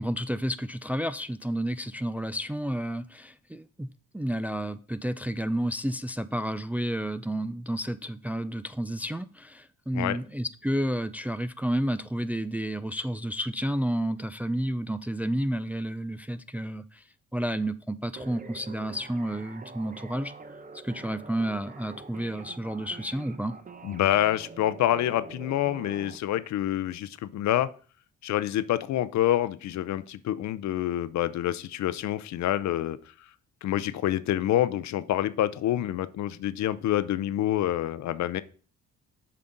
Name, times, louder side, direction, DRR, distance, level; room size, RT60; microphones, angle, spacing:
voice 1, 0.0-3.9 4.1-17.0 17.3-20.3 20.8-23.6, right 1 dB, 5° right, 12 dB, 0.3 m, -31 dB
sound 1, 18.2-26.2, right 4 dB, 30° right, 0.8 m, -46 dB
voice 2, 23.8-27.7 28.2-33.0 33.6-38.4, left 12 dB, 65° left, 16 dB, 0.6 m, -27 dB
7.3 x 5.7 x 3.9 m, 0.41 s
cardioid pair, 90°, 30 cm